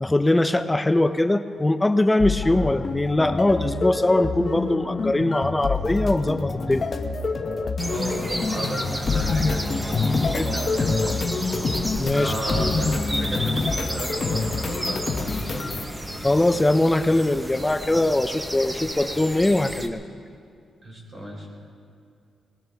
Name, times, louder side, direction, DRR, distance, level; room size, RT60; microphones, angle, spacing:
voice 1, 0.0-6.9 10.3-10.5 12.0-12.3 12.6-12.7 16.2-20.0, left 1 dB, 10° left, 10 dB, 0.4 m, -21 dB
sound 1, 2.2-15.9, left 4 dB, 40° left, 0.8 m, -27 dB
sound 2, 7.8-19.9, right 1 dB, 10° right, 0.9 m, -32 dB
voice 2, 7.9-11.2 11.9-15.8 20.8-21.5, right 1 dB, 35° right, -3 dB, 4.2 m, -34 dB
20.5 x 20.0 x 3.4 m, 2.3 s
wide cardioid pair, 145°, 0 cm